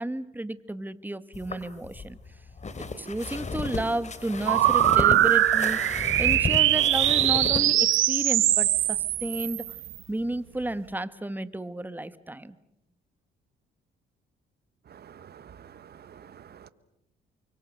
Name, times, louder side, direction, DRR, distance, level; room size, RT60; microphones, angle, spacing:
voice 1, 0.0-2.2 2.8-9.6 10.1-12.5, right 1 dB, 10° right, 1.5 m, -32 dB
sound 1, 1.3-7.6, left 4 dB, 35° left, 2.9 m, -34 dB
sound 2, 4.5-10.0, right 13 dB, 85° right, 1.6 m, -22 dB
voice 2, 14.9-16.7, right 8 dB, 55° right, 1.4 m, -49 dB
29.0 x 24.5 x 6.6 m
cardioid pair, 90°, 20 cm